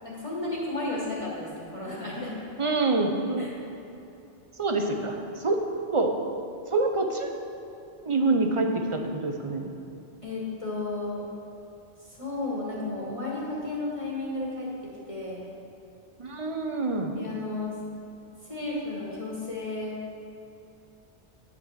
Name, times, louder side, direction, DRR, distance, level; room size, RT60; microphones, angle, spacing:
voice 1, 0.0-2.4 3.4-3.5 10.2-11.2 12.1-15.4 17.2-17.8 18.4-20.0, left 2 dB, 30° left, -6 dB, 1.8 m, -33 dB
voice 2, 2.6-3.5 4.6-5.6 5.9-6.1 6.7-7.3 8.0-9.7 16.2-17.1, right 3 dB, 35° right, 4 dB, 0.7 m, -26 dB
9.4 x 6.0 x 6.5 m, 2.7 s
omnidirectional pair, 1.1 m